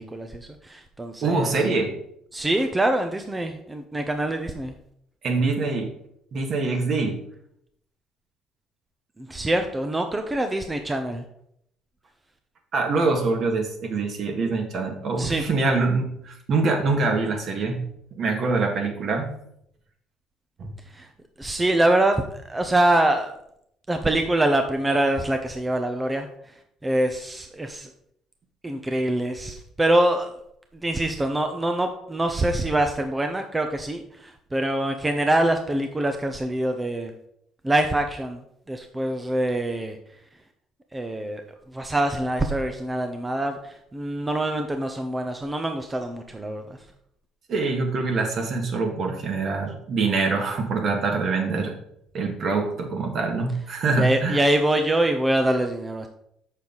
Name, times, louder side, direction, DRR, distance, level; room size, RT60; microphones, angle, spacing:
voice 1, 0.0-1.5 2.3-4.7 9.2-11.2 15.2-15.4 20.9-21.1 21.4-23.3 23.9-26.3 26.8-27.9 28.6-30.3 30.7-37.1 37.6-38.4 38.7-40.0 40.9-41.4 41.7-46.6 54.0-56.1, right 1 dB, 20° right, 5 dB, 0.8 m, -24 dB
voice 2, 1.2-1.9 5.2-5.9 6.3-7.2 12.7-17.9 18.1-19.3 20.6-20.7 47.5-51.7 52.1-54.4, right 3 dB, 55° right, 3 dB, 1.9 m, -24 dB
7.0 x 6.5 x 4.0 m, 0.73 s
hypercardioid pair, 60°, 0 cm